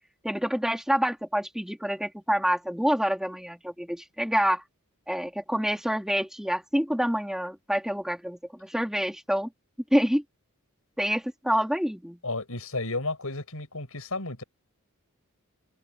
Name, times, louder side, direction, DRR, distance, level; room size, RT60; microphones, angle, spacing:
voice 1, 0.2-4.6 5.1-9.5 9.9-10.2 11.0-12.2, equal, ahead, 2.8 m, -27 dB
voice 2, 12.2-14.4, left 2 dB, 75° left, 7.9 m, -32 dB
head